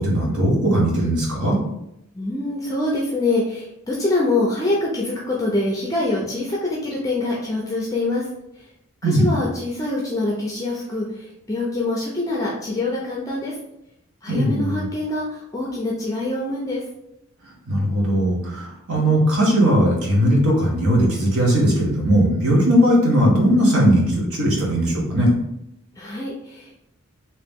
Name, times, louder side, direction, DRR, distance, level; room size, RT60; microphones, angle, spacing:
voice 1, 0.0-1.6 9.0-9.3 14.3-14.8 17.7-25.3, equal, 85° right, -3 dB, 1.2 m, -18 dB
voice 2, 2.1-8.3 9.0-13.6 14.2-16.8 26.0-26.8, left 2 dB, 15° left, -4 dB, 0.5 m, -25 dB
3.0 x 2.9 x 3.5 m, 0.81 s
head